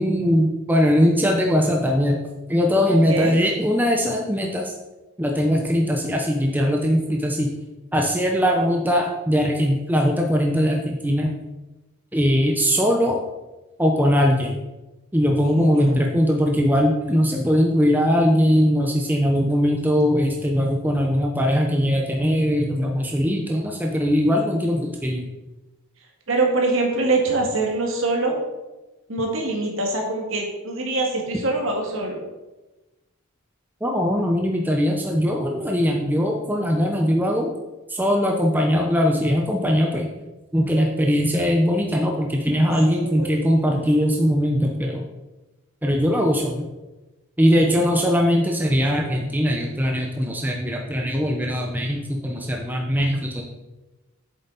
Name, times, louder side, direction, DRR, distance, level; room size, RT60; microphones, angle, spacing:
voice 1, 0.0-2.2 2.5-4.7 5.2-7.5 7.9-11.3 12.1-13.2 13.8-14.6 15.1-25.3 33.8-37.5 37.9-40.1 40.5-45.0 45.8-46.7 47.4-53.4, equal, 10° right, 1 dB, 0.7 m, -20 dB
voice 2, 2.9-3.4 15.6-15.9 26.3-28.4 29.1-32.2 42.9-43.4 47.6-47.7, right 2 dB, 60° right, 1 dB, 1.9 m, -24 dB
8.4 x 7.1 x 4.0 m, 1.1 s
head